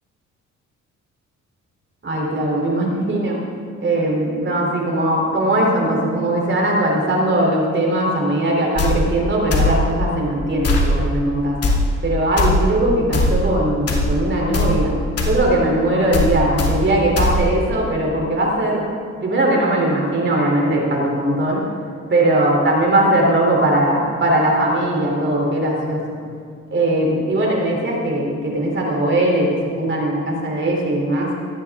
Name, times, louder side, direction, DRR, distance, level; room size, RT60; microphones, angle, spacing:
voice 1, 2.0-3.4 3.8-11.6 12.0-14.9 15.3-18.8 19.2-21.6 22.1-26.2 26.7-31.3, right 1 dB, 40° right, -1 dB, 3.5 m, -19 dB
sound 1, 8.8-8.9 9.5-9.7 10.6-10.9 11.6-11.8 12.4-12.5 13.1-13.3 13.9-14.1 14.5-14.7 15.2-15.3 16.1-16.3 16.6-16.7 17.2-17.3, left 3 dB, 55° left, 2.6 m, -18 dB
17.5 x 13.5 x 3.7 m, 2.1 s
cardioid pair, 90°, 30 cm